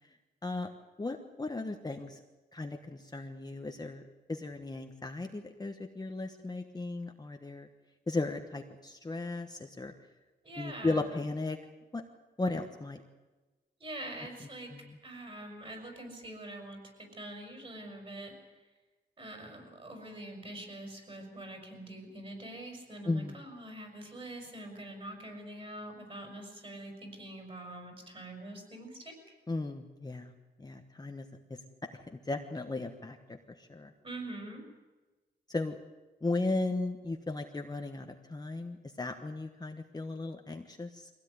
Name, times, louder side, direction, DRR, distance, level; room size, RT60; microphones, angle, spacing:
voice 1, 1.0-2.2 2.5-4.0 4.3-7.7 8.1-9.9 10.6-11.6 11.9-12.0 12.4-13.0 14.7-15.0 23.0-23.4 29.5-30.3 30.6-31.3 32.1-33.9 35.5-35.8 36.2-41.1, left 2 dB, 20° left, 4 dB, 1.2 m, -36 dB
voice 2, 10.4-11.0 13.8-14.7 15.0-18.3 19.2-29.1 34.0-34.6, right 1 dB, 30° right, 3 dB, 6.0 m, -44 dB
23.5 x 17.0 x 9.6 m, 1.2 s
wide cardioid pair, 180°, 18 cm